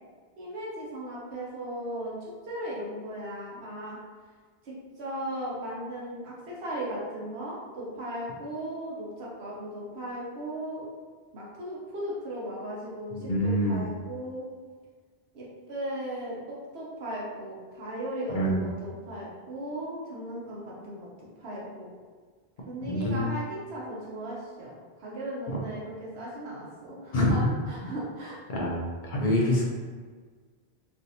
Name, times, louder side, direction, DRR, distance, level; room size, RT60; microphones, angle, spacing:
voice 1, 0.4-4.0 4.6-10.9 11.3-14.4 15.3-21.9 22.7-27.4 27.7-28.4, right 1 dB, 75° right, -5 dB, 1.2 m, -37 dB
voice 2, 13.2-13.9 18.3-18.7 22.9-23.2 25.5-25.6 27.1-27.3 27.8-27.9 28.5-29.6, equal, 55° left, -3 dB, 0.6 m, -26 dB
3.3 x 2.5 x 2.7 m, 1.5 s
omnidirectional pair, 1.1 m